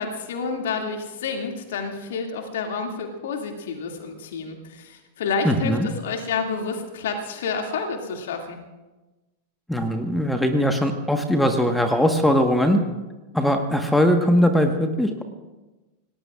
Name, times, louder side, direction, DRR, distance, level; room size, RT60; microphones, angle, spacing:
voice 1, 0.0-8.6, left 5 dB, 60° left, 3 dB, 2.4 m, -29 dB
voice 2, 5.4-5.9 9.7-12.8 13.3-15.2, equal, 5° left, 6 dB, 1.4 m, -20 dB
27.5 x 19.0 x 2.5 m, 1.1 s
figure-of-eight pair, 90°, 0 cm